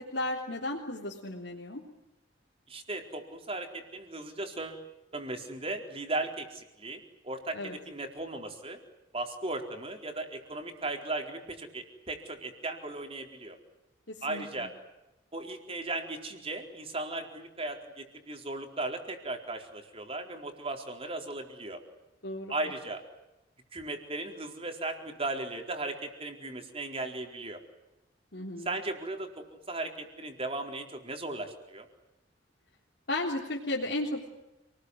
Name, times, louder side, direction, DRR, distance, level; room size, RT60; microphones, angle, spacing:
voice 1, 0.0-1.8 7.5-7.8 14.1-14.7 22.2-22.5 28.3-28.7 33.1-34.3, left 1 dB, 60° left, -2 dB, 3.6 m, -34 dB
voice 2, 2.7-4.8 5.1-8.8 9.1-13.6 14.2-14.7 15.3-21.8 22.5-23.0 23.7-27.6 28.6-31.9, right 2 dB, 30° right, 4 dB, 4.3 m, -37 dB
29.0 x 20.5 x 9.6 m, 0.97 s
head